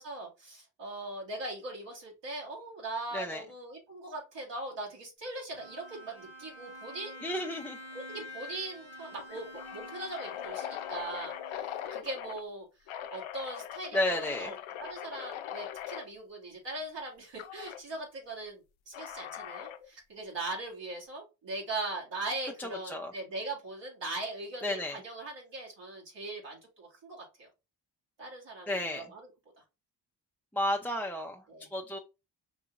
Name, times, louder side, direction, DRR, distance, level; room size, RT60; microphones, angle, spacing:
voice 1, 0.0-7.4 7.9-12.7 13.1-27.5 28.2-29.3 31.5-31.7, right 2 dB, 65° right, -3 dB, 1.9 m, -40 dB
Bowed string instrument, 5.5-12.0, left 1 dB, 90° right, 1.8 m, -48 dB
voice 2, 7.2-7.8 13.9-14.5 22.6-23.1 24.6-25.0 28.7-29.1 30.5-31.4 31.7-32.0, left 1 dB, 5° left, 0 dB, 0.6 m, -32 dB
sound 1, 7.9-8.2 8.5-8.6 9.2-12.4 12.9-16.1 17.4-17.8 18.9-19.9, left 10 dB, 80° left, 0.6 m, -41 dB
5.3 x 2.8 x 2.4 m, 0.27 s
supercardioid pair, 45°, 47 cm